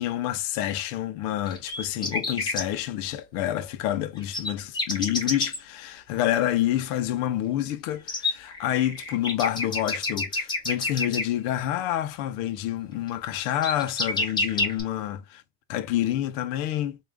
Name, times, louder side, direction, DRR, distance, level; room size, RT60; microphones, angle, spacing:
voice 1, 0.0-15.4 15.7-17.0, left 12 dB, 65° left, 0.7 m, -28 dB
sound 1, 1.5-2.6 4.2-5.6 7.6-7.7 8.1-11.2 13.1-13.2 13.5-14.8, left 2 dB, 10° left, 0.5 m, -28 dB
3.8 x 2.4 x 3.3 m
cardioid pair, 170°, 41 cm